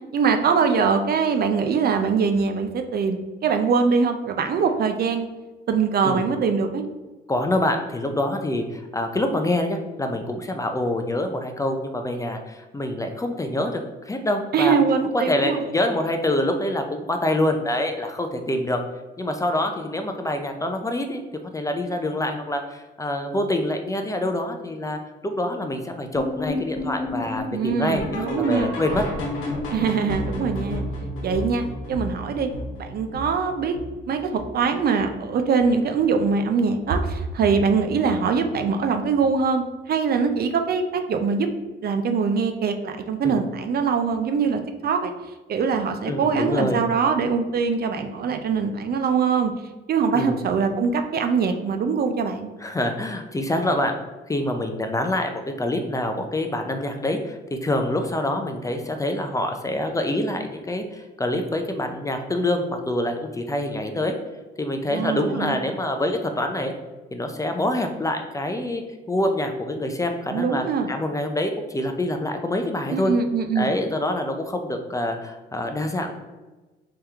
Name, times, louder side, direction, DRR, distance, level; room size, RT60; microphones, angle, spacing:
voice 1, 0.1-5.3 5.7-6.8 14.5-15.6 27.5-28.7 29.7-30.8 31.2-32.5 32.8-33.8 34.1-41.5 41.8-45.1 45.5-49.5 49.9-52.5 64.9-65.6 70.3-70.9 72.9-73.7, right 5 dB, 50° right, 6 dB, 0.5 m, -23 dB
voice 2, 7.3-14.7 15.1-18.8 19.2-21.2 21.5-29.1 43.2-43.4 46.0-46.8 50.1-50.4 52.6-54.0 54.3-64.1 64.6-66.7 67.1-68.8 69.1-73.1 73.6-76.1, left 1 dB, 15° left, 5 dB, 0.4 m, -26 dB
sound 1, 26.1-35.3 35.6-35.9 36.2-36.3 36.8-36.9 37.4-37.5, left 1 dB, 90° left, 1.0 m, -32 dB
3.5 x 2.9 x 3.5 m, 1.2 s
cardioid pair, 90°, 20 cm